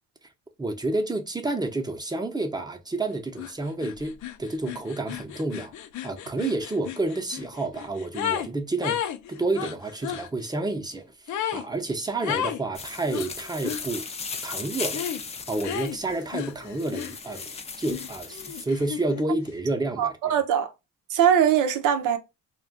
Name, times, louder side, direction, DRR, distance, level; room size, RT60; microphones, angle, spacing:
voice 1, 0.6-5.7 6.0-9.0 9.3-14.1 14.4-15.1 15.5-20.3, right 2 dB, 15° right, 0.6 m, -30 dB
sound 1, 3.4-3.5 3.8-8.5 8.8-10.3 11.3-11.7 12.2-12.6 13.1-13.8 14.9-15.2 15.6-17.5 17.9-19.3, left 10 dB, 70° left, 0.5 m, -33 dB
sound 2, 12.7-18.6, left 5 dB, 20° left, 0.4 m, -37 dB
voice 2, 20.0-20.7 21.1-22.2, right 9 dB, 85° right, 0.6 m, -21 dB
2.4 x 2.2 x 3.6 m
cardioid pair, 90°, 30 cm